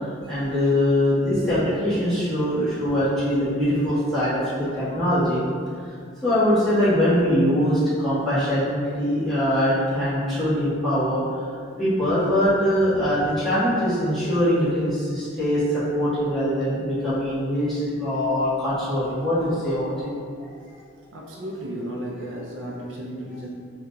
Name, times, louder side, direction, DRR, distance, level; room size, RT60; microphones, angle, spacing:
voice 1, 0.3-5.4 5.8-5.9 6.2-11.5 11.8-20.1 20.4-20.5 23.3-23.4, equal, ahead, -15 dB, 1.4 m, -22 dB
voice 2, 21.1-23.5, right 1 dB, 75° right, -3 dB, 0.5 m, -34 dB
3.7 x 2.9 x 2.3 m, 2.2 s
head